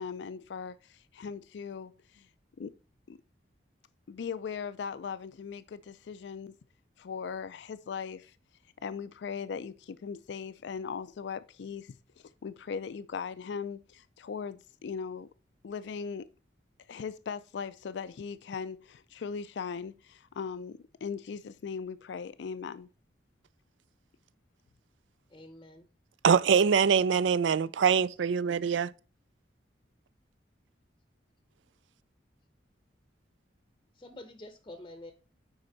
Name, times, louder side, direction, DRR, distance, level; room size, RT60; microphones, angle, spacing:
voice 1, 0.0-2.3 2.6-2.7 3.1-3.2 4.1-6.5 7.0-8.4 8.8-15.3 15.6-16.3 16.9-22.9, left 6 dB, 70° left, 0.4 m, -39 dB
voice 2, 25.3-25.9 33.9-35.1, left 1 dB, 25° left, 0.7 m, -47 dB
voice 3, 26.2-28.9, right 6 dB, 85° right, 0.4 m, -24 dB
9.6 x 4.4 x 3.9 m
head